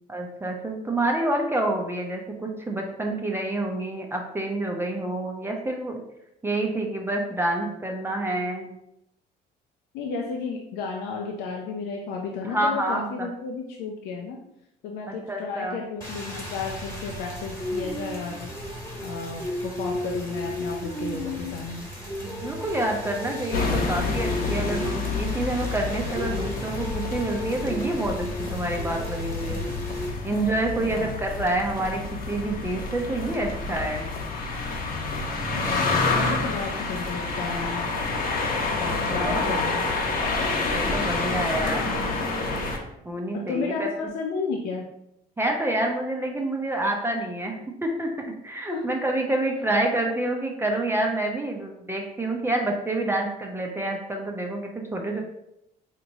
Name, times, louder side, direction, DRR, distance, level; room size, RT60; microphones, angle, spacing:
voice 1, 0.1-6.0 6.4-8.7 12.4-13.3 15.1-15.8 22.2-29.6 30.2-32.0 32.3-34.1 39.1-39.4 40.7-42.0 43.1-43.9 45.4-55.2, right 1 dB, 15° right, 1 dB, 0.5 m, -28 dB
voice 2, 9.9-14.4 14.8-18.5 19.0-21.9 30.8-31.2 35.5-37.9 38.8-39.9 43.3-44.8 48.7-48.9, left 4 dB, 85° left, 0 dB, 0.5 m, -33 dB
Rain, 16.0-30.1, equal, 15° left, 1.2 m, -34 dB
sound 1, 23.5-42.8, left 3 dB, 55° left, 0.8 m, -28 dB
4.3 x 2.8 x 2.7 m, 0.81 s
cardioid pair, 110°, 17 cm